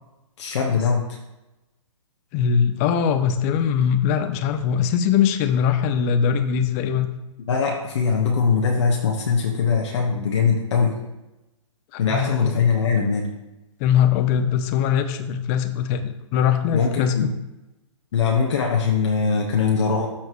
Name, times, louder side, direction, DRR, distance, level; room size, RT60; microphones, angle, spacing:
voice 1, 0.4-1.0 7.5-11.0 12.0-13.4 16.7-17.3 18.1-20.1, left 5 dB, 60° left, -1 dB, 1.3 m, -21 dB
voice 2, 2.3-7.1 11.9-12.6 13.8-17.3, left 8 dB, 30° left, 8 dB, 0.7 m, -21 dB
12.5 x 4.5 x 3.1 m, 0.99 s
hypercardioid pair, 135°, 17 cm